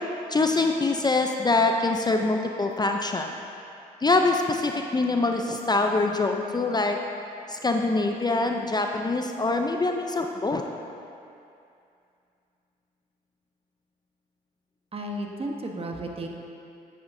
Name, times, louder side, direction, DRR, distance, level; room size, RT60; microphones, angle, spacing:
voice 1, 0.3-3.4 4.0-7.0 7.5-10.6, left 3 dB, 25° left, 3 dB, 0.6 m, -24 dB
voice 2, 14.9-16.3, right 1 dB, 35° right, 1 dB, 1.2 m, -33 dB
10.5 x 8.5 x 2.7 m, 2.6 s
supercardioid pair, 60°, 18 cm